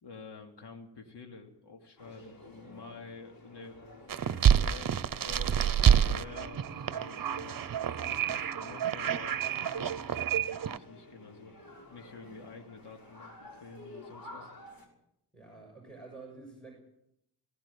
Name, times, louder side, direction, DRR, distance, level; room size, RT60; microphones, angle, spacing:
voice 1, 0.0-3.8 4.4-5.7 6.1-7.6 8.0-11.6 11.9-14.5, left 4 dB, 75° left, 3 dB, 2.9 m, -49 dB
sound 1, 2.0-14.9, left 1 dB, 55° left, 5.9 m, -52 dB
sound 2, 4.1-10.8, right 9 dB, 55° right, 0.9 m, -28 dB
voice 2, 15.3-16.8, right 3 dB, ahead, 1 dB, 6.6 m, -49 dB
20.0 x 18.0 x 8.7 m, 0.79 s
wide cardioid pair, 120°, 41 cm